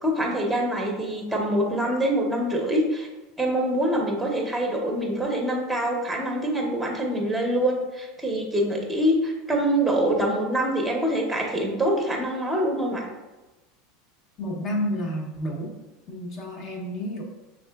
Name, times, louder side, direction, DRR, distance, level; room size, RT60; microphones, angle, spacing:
voice 1, 0.0-3.1 3.4-13.1, right 1 dB, 5° right, 1 dB, 0.8 m, -25 dB
voice 2, 14.4-15.8 16.1-17.2, equal, 40° left, 1 dB, 0.8 m, -30 dB
5.4 x 3.6 x 2.3 m, 1.1 s
supercardioid pair, 145°, 0 cm